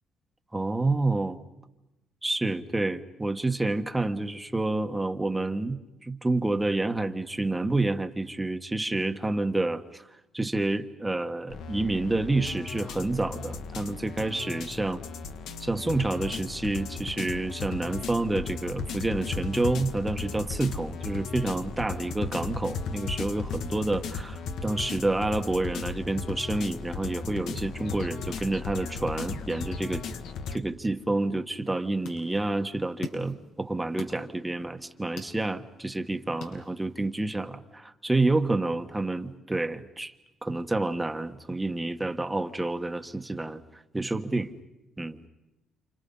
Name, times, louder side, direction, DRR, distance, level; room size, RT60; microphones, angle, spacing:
voice 1, 0.5-1.4 2.2-10.1 10.3-15.0 15.6-30.0 30.5-40.1 40.4-43.6 43.9-44.5 45.0-45.2, right 2 dB, 10° right, 7 dB, 1.4 m, -29 dB
sound 1, 11.5-30.6, left 5 dB, 70° left, 1.7 m, -36 dB
sound 2, 31.5-37.2, left 4 dB, 85° left, 8.0 m, -46 dB
30.0 x 29.0 x 5.6 m, 0.98 s
cardioid pair, 125°, 0 cm